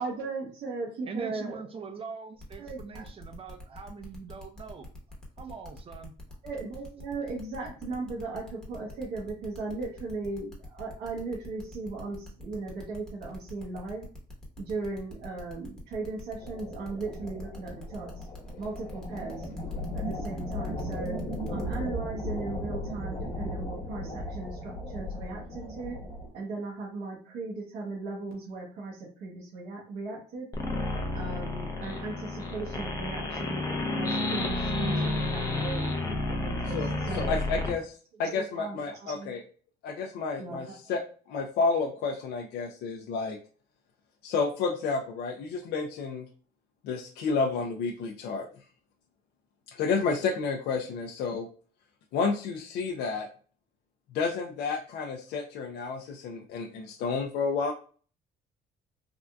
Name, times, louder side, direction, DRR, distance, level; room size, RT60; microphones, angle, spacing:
voice 1, 0.0-1.8 2.6-3.1 6.4-14.1 14.6-18.3 18.6-19.5 19.9-21.2 21.5-26.0 26.3-35.9 36.3-37.3 38.2-39.3 40.4-40.6, right 3 dB, 75° right, -2 dB, 1.0 m, -37 dB
voice 2, 1.1-4.9 5.4-6.1, right 5 dB, 35° right, 6 dB, 0.5 m, -42 dB
sound 1, 2.4-21.8, left 2 dB, 5° left, 0.9 m, -47 dB
sound 2, 16.4-26.3, left 1 dB, 40° left, 1.1 m, -36 dB
sound 3, 30.5-37.7, left 2 dB, 20° left, 0.5 m, -30 dB
voice 3, 36.7-39.4 39.8-41.0 41.3-43.4 44.2-46.3 46.8-48.5 49.7-51.5 52.1-53.3 54.1-57.7, left 4 dB, 75° left, 2 dB, 0.4 m, -30 dB
3.4 x 2.5 x 2.2 m, 0.43 s
cardioid pair, 110°, 17 cm